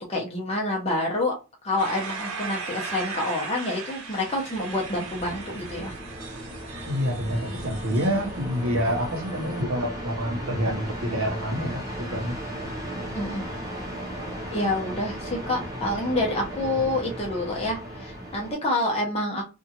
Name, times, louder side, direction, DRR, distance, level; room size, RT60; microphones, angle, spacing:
voice 1, 0.0-1.3 1.6-5.9 13.1-13.4 14.5-19.4, left 1 dB, 25° left, 0.8 m, -27 dB
sound 1, 1.8-9.6, right 5 dB, 90° right, 1.2 m, -38 dB
sound 2, 4.1-18.5, equal, 15° right, 0.6 m, -36 dB
voice 2, 6.9-11.8 12.1-12.3, equal, 65° right, 0.8 m, -27 dB
2.7 x 2.4 x 2.8 m
head